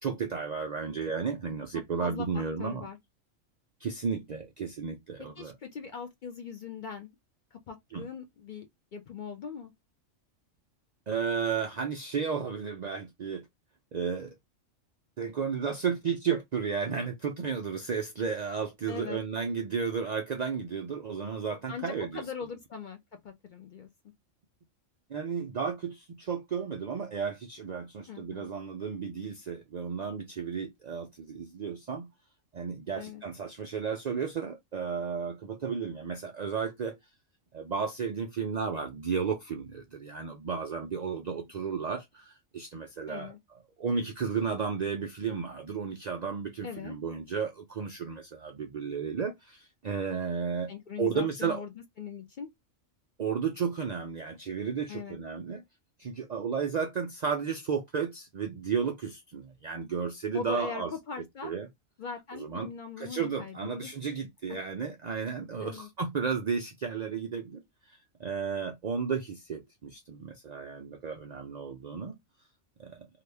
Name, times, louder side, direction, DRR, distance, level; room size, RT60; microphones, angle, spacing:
voice 1, 0.0-2.9 3.8-5.5 7.9-8.1 11.1-13.4 13.9-14.3 15.2-22.2 25.1-32.1 32.5-37.0 37.5-43.3 43.8-50.7 51.0-51.6 53.2-55.6 56.0-60.9 61.4-61.7 62.3-67.6 67.9-72.2 72.8-73.1, right 6 dB, 85° right, 0.3 m, -33 dB
voice 2, 2.0-3.0 5.4-7.2 7.5-9.7 18.9-19.2 21.7-23.0 23.2-23.9 28.1-28.5 33.0-33.2 41.3-41.5 43.1-43.4 46.6-46.9 50.7-51.7 52.0-52.5 54.9-55.2 60.3-61.5 62.0-63.9 65.6-65.9, left 6 dB, 60° left, 0.5 m, -41 dB
2.8 x 2.3 x 3.2 m
omnidirectional pair, 1.3 m